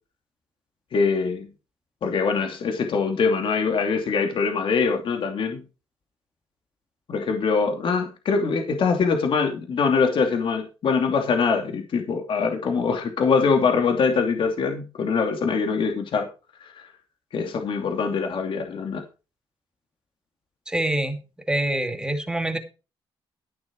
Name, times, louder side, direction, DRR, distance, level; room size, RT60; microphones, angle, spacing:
voice 1, 0.9-1.5 2.0-5.6 7.1-16.3 17.3-19.0, left 5 dB, 60° left, 3 dB, 2.7 m, -23 dB
voice 2, 20.7-21.2 21.5-22.6, right 1 dB, 10° right, 6 dB, 2.3 m, -25 dB
14.0 x 6.8 x 4.7 m, 0.31 s
cardioid pair, 105°, 10 cm